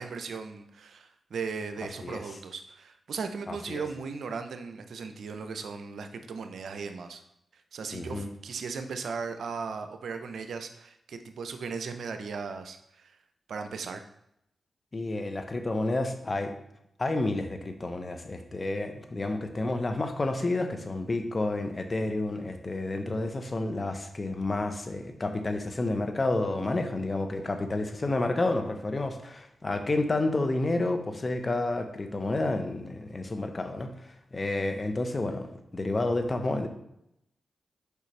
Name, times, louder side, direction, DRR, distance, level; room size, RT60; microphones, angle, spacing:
voice 1, 0.0-7.2 7.7-13.1 13.5-14.0, right 5 dB, 80° right, 8 dB, 0.6 m, -37 dB
voice 2, 3.5-3.8 7.9-8.3 14.9-16.5 17.0-36.7, left 2 dB, 40° left, 6 dB, 0.9 m, -30 dB
6.8 x 4.9 x 3.2 m, 0.79 s
supercardioid pair, 45°, 0 cm